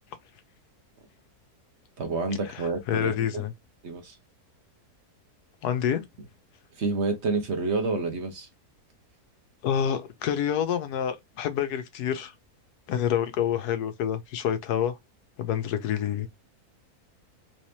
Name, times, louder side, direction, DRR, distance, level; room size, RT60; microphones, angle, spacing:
voice 1, 2.0-3.4 3.8-4.2 6.7-8.5, right 3 dB, 50° right, 1.0 m, -29 dB
voice 2, 2.5-3.5 5.6-6.0 9.6-12.3 12.9-15.0 15.4-16.3, left 9 dB, 90° left, 1.3 m, -27 dB
3.4 x 3.2 x 2.7 m
omnidirectional pair, 1.6 m